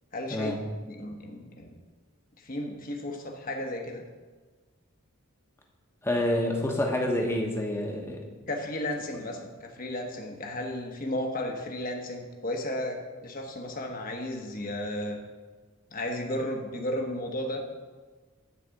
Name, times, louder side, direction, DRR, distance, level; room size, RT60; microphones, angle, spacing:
voice 1, 0.1-0.5 0.9-1.7 2.4-4.0 8.5-15.2 15.9-17.6, left 1 dB, 40° left, 2 dB, 1.1 m, -34 dB
voice 2, 6.0-8.2, left 1 dB, 10° left, 0 dB, 1.1 m, -27 dB
10.5 x 4.2 x 7.6 m, 1.3 s
head